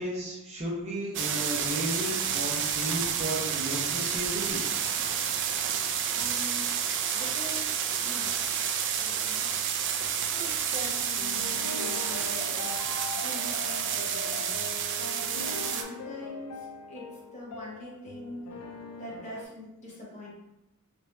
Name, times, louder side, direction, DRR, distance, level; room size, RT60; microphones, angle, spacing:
voice 1, 0.0-4.6, equal, 30° right, -4 dB, 0.8 m, -34 dB
sound 1, 1.1-15.8, right 8 dB, 55° right, 0.3 m, -30 dB
voice 2, 6.1-6.7 7.1-8.3 8.9-9.5 10.3-14.5 15.0-18.4 19.0-20.3, equal, 30° left, -5 dB, 1.0 m, -43 dB
sound 2, 10.8-19.4, left 3 dB, 90° left, 0.4 m, -41 dB
3.4 x 2.8 x 3.2 m, 0.88 s
head